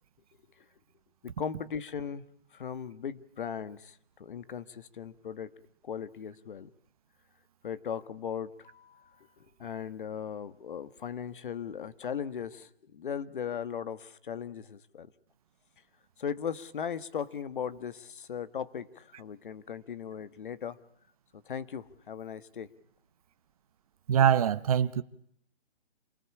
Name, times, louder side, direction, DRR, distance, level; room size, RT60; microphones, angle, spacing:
voice 1, 1.2-2.2 2.5-5.5 5.8-6.7 7.6-15.1 16.2-20.8 21.3-22.7, left 7 dB, 50° left, 1.6 m, -38 dB
voice 2, 24.1-25.0, right 9 dB, 35° right, 1.1 m, -23 dB
28.0 x 19.5 x 8.5 m
hypercardioid pair, 160°, 32 cm